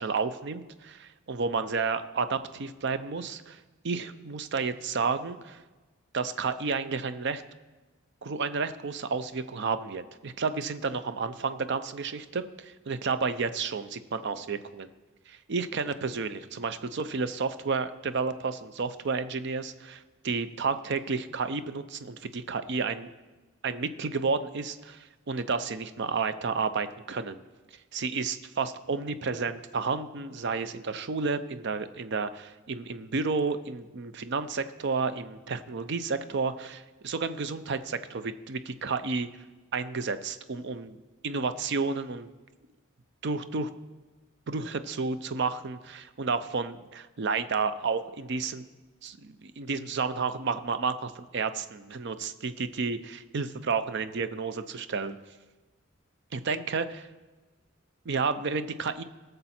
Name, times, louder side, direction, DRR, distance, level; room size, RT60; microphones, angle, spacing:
voice 1, 0.0-3.6 3.8-5.6 6.1-7.4 8.2-14.9 15.3-23.1 23.6-27.4 27.9-39.3 39.7-41.0 41.2-42.3 43.2-43.7 44.5-48.6 49.0-55.2 56.3-57.1 58.1-59.0, right 4 dB, 55° right, 12 dB, 0.6 m, -31 dB
17.5 x 6.7 x 4.3 m, 1.2 s
head